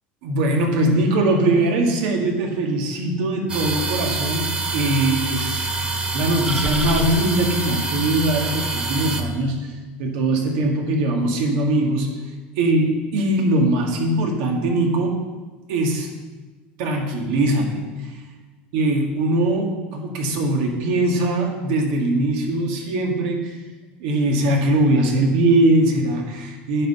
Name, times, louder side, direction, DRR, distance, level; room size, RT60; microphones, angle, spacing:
voice 1, 0.2-5.7 6.1-9.7 10.0-12.1 12.6-15.2 15.7-16.1 16.8-18.1 18.7-23.6 24.0-26.9, right 1 dB, 75° right, 2 dB, 1.7 m, -21 dB
sound 1, 3.5-9.2, right 3 dB, 20° right, 1.0 m, -25 dB
9.0 x 5.8 x 5.5 m, 1.3 s
supercardioid pair, 115°, 5 cm